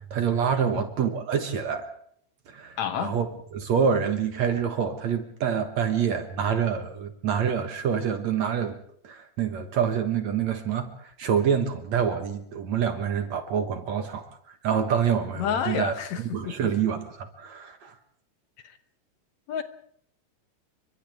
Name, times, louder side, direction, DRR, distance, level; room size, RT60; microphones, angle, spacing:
voice 1, 0.1-1.9 2.5-3.3 3.5-8.8 9.0-15.9 16.3-17.9, right 7 dB, 60° right, 7 dB, 2.4 m, -26 dB
voice 2, 2.8-3.1 15.4-16.6 18.6-18.8 19.5-19.6, left 8 dB, 65° left, 9 dB, 2.0 m, -30 dB
30.0 x 24.5 x 3.6 m, 0.64 s
omnidirectional pair, 4.1 m